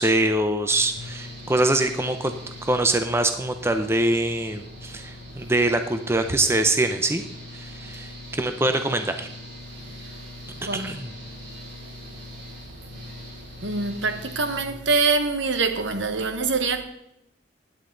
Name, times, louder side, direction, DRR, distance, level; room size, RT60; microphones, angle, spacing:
voice 1, 0.0-2.3 2.6-7.2 7.5-9.3 10.7-11.1, right 2 dB, 15° right, 0.6 m, -24 dB
Engine / Mechanical fan, 0.7-14.6, left 1 dB, 60° right, 5.2 m, -41 dB
voice 2, 13.6-16.8, right 4 dB, 75° right, 1.3 m, -24 dB
16.0 x 10.0 x 3.9 m
head